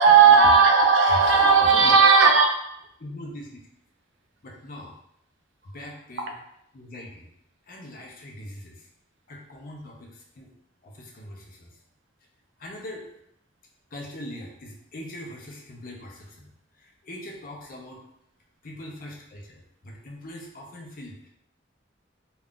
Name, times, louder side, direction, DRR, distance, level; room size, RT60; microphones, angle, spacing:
voice 1, 0.0-2.5, right 5 dB, 80° right, 3 dB, 0.5 m, -15 dB
voice 2, 3.0-3.6 4.4-4.9 5.6-6.3 6.7-7.3 7.7-8.9 9.3-10.5 10.8-11.8 12.6-13.1 13.9-18.0 18.6-21.3, left 1 dB, 50° left, -1 dB, 0.6 m, -41 dB
2.4 x 2.3 x 3.6 m, 0.76 s
head